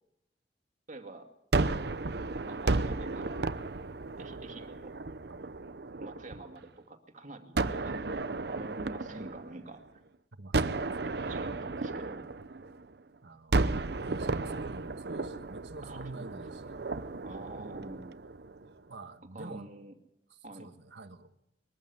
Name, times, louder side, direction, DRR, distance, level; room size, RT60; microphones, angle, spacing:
voice 1, 0.9-1.3 1.6-2.0 2.4-3.4 4.2-4.9 6.0-9.8 11.2-12.3 15.8-16.3 17.2-18.1 19.3-19.9 20.4-20.7, right 2 dB, 45° right, 2.4 m, -46 dB
Gunshot gunfire, 1.5-6.6 7.6-10.0 10.5-13.0 13.5-18.7, right 3 dB, 65° right, 0.8 m, -33 dB
voice 2, 10.3-10.9 13.2-16.8 18.9-19.7 20.3-21.3, right 2 dB, 90° right, 1.6 m, -47 dB
22.0 x 14.5 x 9.5 m
head